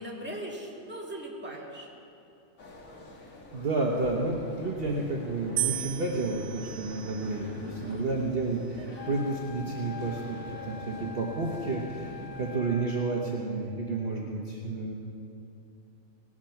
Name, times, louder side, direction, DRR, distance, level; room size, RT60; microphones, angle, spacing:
voice 1, 0.0-1.9 7.0-7.1 7.6-8.0 8.8-9.1, right 1 dB, 10° right, -4 dB, 2.1 m, -40 dB
sound 1, 2.6-12.5, left 1 dB, 85° left, 2.0 m, -46 dB
voice 2, 3.5-10.4 10.7-14.9, right 3 dB, 50° right, -2 dB, 1.3 m, -31 dB
sound 2, 5.6-7.8 8.6-9.1, right 12 dB, 65° right, 0.5 m, -36 dB
Wind instrument woodwind instrument, 9.0-13.4, left 7 dB, 45° left, 0.7 m, -44 dB
18.5 x 8.9 x 5.8 m, 2.7 s
omnidirectional pair, 1.4 m